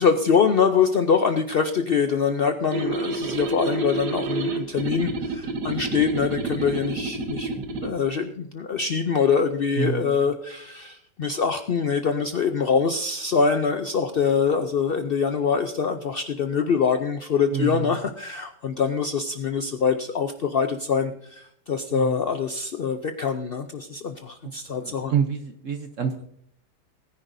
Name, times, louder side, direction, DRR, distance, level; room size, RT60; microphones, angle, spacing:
voice 1, 0.0-7.5 7.8-25.1, left 6 dB, 80° left, 7 dB, 0.5 m, -24 dB
sound 1, 2.7-7.9, right 4 dB, 80° right, 1.8 m, -29 dB
voice 2, 9.8-10.2 17.5-18.0 21.9-22.2 24.4-24.5 24.8-26.2, right 7 dB, 55° right, 6 dB, 1.0 m, -27 dB
20.5 x 10.0 x 2.6 m, 0.69 s
omnidirectional pair, 1.8 m